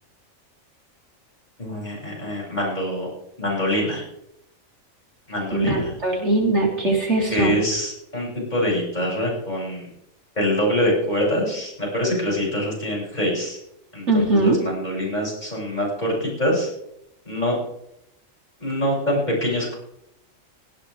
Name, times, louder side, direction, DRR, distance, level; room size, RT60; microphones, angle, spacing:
voice 1, 1.6-3.1 3.4-4.0 5.3-5.9 7.3-9.9 10.3-13.6 13.9-16.7 17.2-17.6 18.6-19.8, equal, 30° left, -4 dB, 8.0 m, -24 dB
voice 2, 5.5-7.6 14.1-14.6, right 2 dB, 55° right, -1 dB, 3.6 m, -20 dB
18.0 x 16.0 x 3.6 m, 0.79 s
omnidirectional pair, 1.4 m